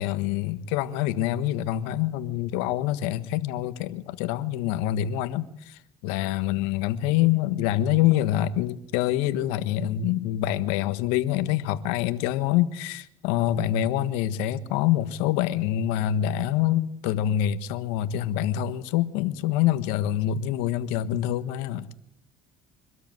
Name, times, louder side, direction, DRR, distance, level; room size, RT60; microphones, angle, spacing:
voice 1, 0.0-21.9, left 12 dB, 80° left, 1.4 m, -26 dB
24.5 x 13.0 x 9.4 m
supercardioid pair, 105°, 10 cm